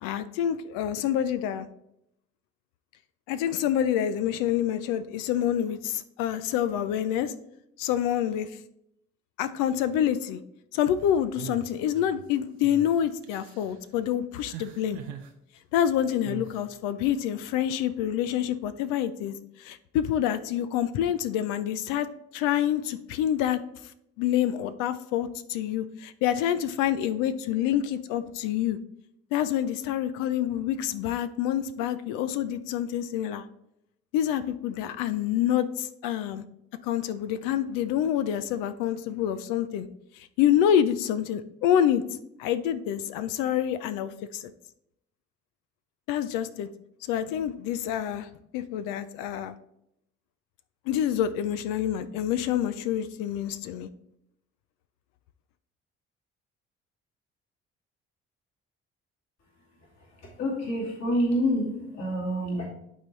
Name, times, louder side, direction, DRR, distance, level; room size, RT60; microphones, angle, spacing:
voice 1, 0.0-1.7 3.3-7.3 7.8-8.6 9.4-10.4 10.7-15.0 15.7-22.1 22.3-23.6 24.2-28.8 29.3-33.5 34.1-36.4 36.8-39.9 40.1-42.0 42.4-44.5 46.1-46.7 47.0-49.5 50.9-53.9, left 10 dB, 75° left, 12 dB, 0.5 m, -27 dB
sound 1, 11.3-12.2 12.6-12.9 13.2-13.7 14.4-15.3 16.2-16.6, right 9 dB, 85° right, 0.7 m, -42 dB
voice 2, 60.4-62.6, equal, 55° left, -3 dB, 2.4 m, -27 dB
11.0 x 3.8 x 3.1 m, 0.77 s
hypercardioid pair, 50°, 33 cm